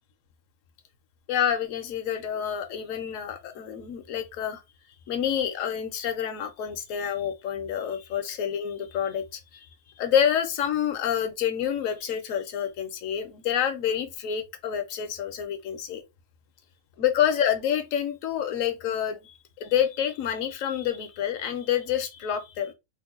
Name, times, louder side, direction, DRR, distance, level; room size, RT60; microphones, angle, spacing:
voice 1, 1.3-4.6 5.1-9.7 10.0-16.0 17.0-22.7, left 9 dB, 65° left, 1.0 m, -28 dB
3.0 x 2.2 x 3.6 m
omnidirectional pair, 1.6 m